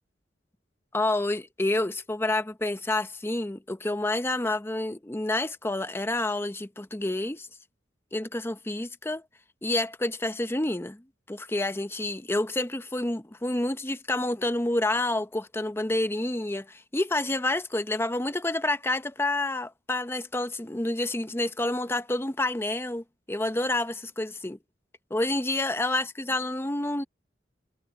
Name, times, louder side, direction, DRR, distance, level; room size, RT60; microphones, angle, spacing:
voice 1, 0.9-7.5 8.1-9.2 9.6-11.0 11.3-24.6 25.1-27.0, left 2 dB, 15° left, 0.7 m, -28 dB
head